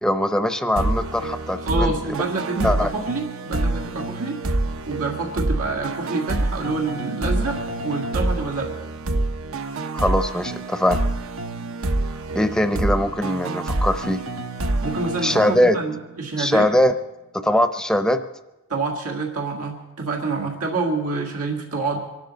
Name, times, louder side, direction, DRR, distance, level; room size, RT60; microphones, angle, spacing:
voice 1, 0.0-1.9 2.6-3.0 9.9-11.0 12.3-14.2 15.2-15.8 16.4-16.9 17.3-18.2, left 1 dB, 5° left, 8 dB, 0.6 m, -21 dB
sound 1, 0.8-16.2, right 2 dB, 70° right, 0.8 m, -27 dB
voice 2, 1.6-4.4 4.9-8.7 14.8-15.4 15.7-16.7 18.7-22.0, right 3 dB, 90° right, 1 dB, 1.8 m, -27 dB
25.5 x 12.0 x 4.0 m, 1.0 s
head